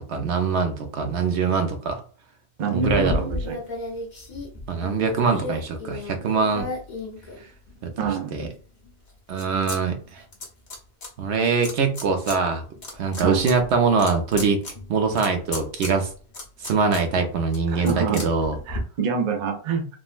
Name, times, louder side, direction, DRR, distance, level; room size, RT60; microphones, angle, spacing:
voice 1, 0.0-2.0 2.7-3.2 4.7-6.7 7.8-7.9 8.3-8.5 9.3-10.2 11.2-12.6 12.9-14.6 14.9-16.1 16.6-18.6, right 5 dB, 75° right, 6 dB, 0.9 m, -23 dB
voice 2, 2.6-3.6 8.0-8.3 13.2-13.5 17.7-18.2 18.7-19.9, right 5 dB, 55° right, 5 dB, 0.5 m, -26 dB
sound 1, 2.8-7.9 8.4-9.8 10.0-11.1 11.6-12.4 12.7-18.8, left 2 dB, 45° left, 1.0 m, -35 dB
3.6 x 2.1 x 2.4 m, 0.41 s
omnidirectional pair, 1.1 m